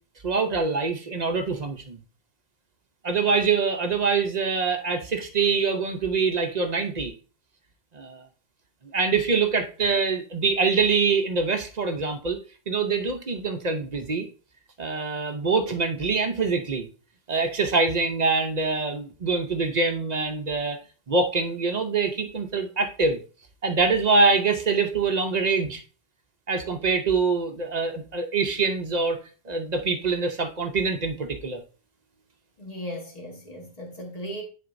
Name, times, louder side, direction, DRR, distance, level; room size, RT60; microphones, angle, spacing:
voice 1, 0.2-2.0 3.0-7.1 7.9-8.3 8.9-12.4 12.7-14.3 14.8-16.9 17.3-20.8 21.1-23.2 23.6-25.8 26.5-31.6, right 4 dB, 45° right, 0.7 m, -24 dB
voice 2, 32.6-34.4, equal, 35° left, 1.7 m, -37 dB
9.8 x 4.4 x 2.6 m
omnidirectional pair, 1.2 m